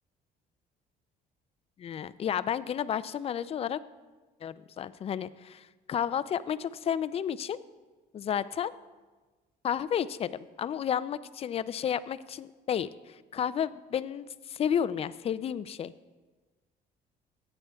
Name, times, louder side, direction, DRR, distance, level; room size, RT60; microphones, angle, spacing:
voice 1, 1.8-3.8 4.4-7.6 8.1-8.7 9.6-10.3 10.6-15.9, left 9 dB, 35° left, 15 dB, 0.3 m, -32 dB
15.0 x 8.8 x 2.3 m, 1.3 s
cardioid pair, 110°, 17 cm